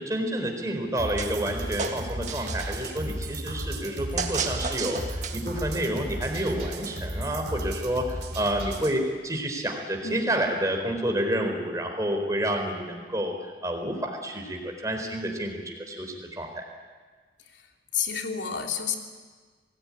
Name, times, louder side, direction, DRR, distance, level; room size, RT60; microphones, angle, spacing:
voice 1, 0.0-13.3 13.6-16.6, right 1 dB, 20° right, 3 dB, 4.3 m, -29 dB
sound 1, 1.0-9.0, right 1 dB, 60° right, 3.3 m, -34 dB
sound 2, 1.2-1.5 1.8-2.9 4.2-5.6, right 5 dB, 40° right, 1.9 m, -32 dB
voice 2, 17.5-19.0, left 7 dB, 85° left, 2 dB, 3.2 m, -31 dB
27.0 x 19.0 x 9.9 m, 1.5 s
head